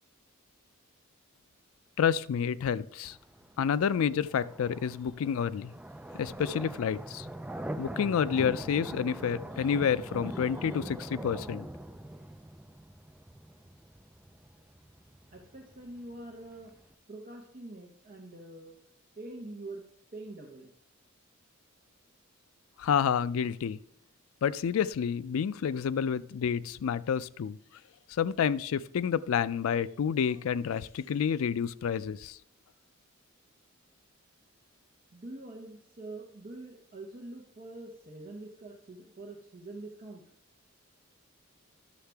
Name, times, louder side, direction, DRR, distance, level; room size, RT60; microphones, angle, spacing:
voice 1, 2.0-3.2 3.6-5.7 6.2-7.3 7.8-11.7 22.8-23.8 24.4-27.6 28.1-32.4, left 7 dB, 85° left, 16 dB, 0.4 m, -29 dB
sound 1, 3.0-16.9, right 1 dB, 5° right, 0.3 m, -43 dB
voice 2, 15.3-16.8 17.1-18.8 19.2-19.9 20.1-20.7 35.1-40.2, right 2 dB, 40° right, 0 dB, 0.9 m, -45 dB
11.5 x 6.5 x 3.4 m, 0.69 s
head